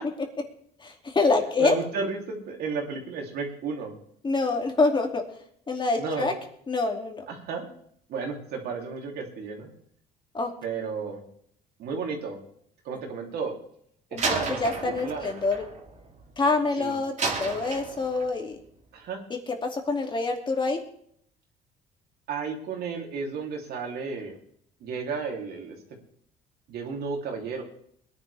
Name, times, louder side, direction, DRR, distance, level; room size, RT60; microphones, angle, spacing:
voice 1, 0.8-1.7 4.2-5.2 5.7-6.3 6.7-7.2 10.3-10.5 14.1-15.6 16.4-18.6 19.6-20.8, left 3 dB, 30° left, 3 dB, 2.6 m, -26 dB
voice 2, 1.6-4.0 6.0-6.3 7.3-7.7 8.1-9.7 10.6-11.2 11.8-12.4 12.8-13.5 14.1-15.3 16.8-16.9 18.9-19.2 22.3-24.4 24.8-25.7 26.7-27.6, right 4 dB, 70° right, 1 dB, 3.3 m, -33 dB
Slam, 14.2-16.6 17.2-18.4, right 4 dB, 45° right, 3.0 m, -32 dB
21.5 x 10.5 x 3.5 m, 0.66 s
cardioid pair, 110°, 17 cm